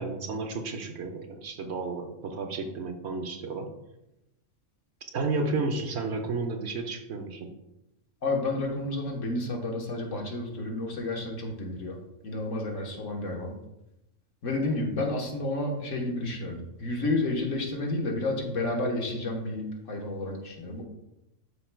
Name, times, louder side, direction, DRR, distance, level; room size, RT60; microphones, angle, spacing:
voice 1, 0.0-3.7 5.1-7.5, right 3 dB, 65° right, 5 dB, 1.0 m, -32 dB
voice 2, 8.2-12.0 12.2-13.5 14.4-19.6 19.9-20.8, left 2 dB, 85° left, 0 dB, 1.6 m, -30 dB
12.0 x 4.4 x 2.2 m, 0.88 s
omnidirectional pair, 1.3 m